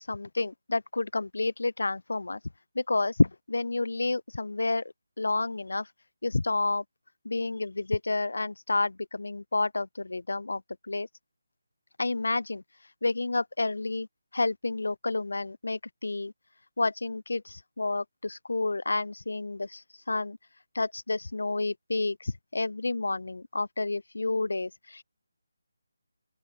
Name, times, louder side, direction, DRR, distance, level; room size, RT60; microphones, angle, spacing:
voice 1, 0.0-2.4 2.8-4.8 5.2-5.9 6.2-6.8 7.2-10.6 10.9-11.1 12.0-14.1 14.3-16.3 16.8-20.4 20.7-25.0, left 3 dB, 85° left, 2.5 m, -30 dB
open air
figure-of-eight pair, 175°, 0 cm